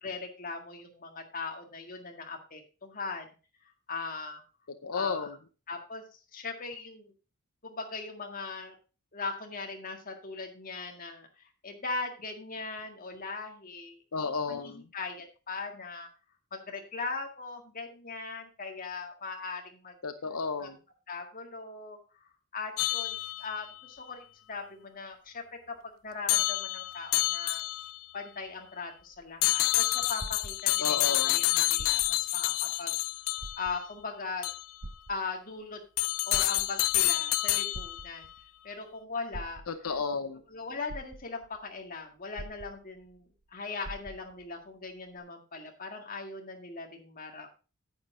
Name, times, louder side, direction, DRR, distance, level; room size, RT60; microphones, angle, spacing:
voice 1, 0.0-3.3 3.9-4.4 4.9-5.3 5.7-6.0 6.3-7.1 7.6-8.7 9.1-16.1 16.5-19.9 20.6-20.7 21.1-25.8 26.0-27.6 28.1-32.9 33.6-34.5 35.1-35.8 36.3-38.3 38.6-39.6 40.5-47.5, left 4 dB, 40° left, 3 dB, 1.8 m, -39 dB
voice 2, 4.8-5.4 14.1-14.8 20.0-20.8 30.8-31.4 39.7-40.4, left 4 dB, 85° left, 9 dB, 0.8 m, -32 dB
sound 1, 22.8-23.7 26.3-28.0 29.4-33.8 34.4-34.6 36.0-38.1, left 18 dB, 65° left, 0.4 m, -28 dB
sound 2, 29.0-31.1 31.7-32.4 32.8-32.9 33.4-34.1 34.8-35.6 36.1-37.0 37.7-38.5 39.3-40.0 40.5-40.6 40.9-41.6 42.4-43.2 43.4-43.5 43.8-44.5 45.2-45.3, right 1 dB, 85° right, 1.3 m, -44 dB
9.5 x 8.1 x 3.8 m, 0.33 s
head